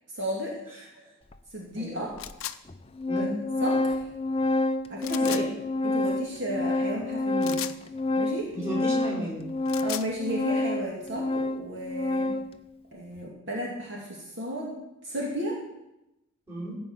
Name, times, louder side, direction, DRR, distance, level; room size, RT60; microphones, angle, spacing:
voice 1, 0.1-0.5 1.5-2.1 3.2-4.0 4.9-5.4 5.8-7.6 8.2-8.5 9.8-12.3 12.9-14.8 15.0-15.6, equal, 55° right, -3 dB, 2.7 m, -33 dB
Organ, 1.3-1.4 2.3-2.4 2.7-12.6, left 2 dB, 25° left, 0.6 m, -28 dB
voice 2, 1.8-2.1 3.1-3.3 5.2-5.5 8.5-9.5 12.2-12.3 16.5-16.7, equal, 15° right, -6 dB, 5.5 m, -34 dB
sound 1, 2.2-2.6 5.0-5.4 7.4-7.8 9.5-10.1, left 12 dB, 65° left, 0.6 m, -35 dB
15.5 x 5.5 x 9.1 m, 0.91 s
head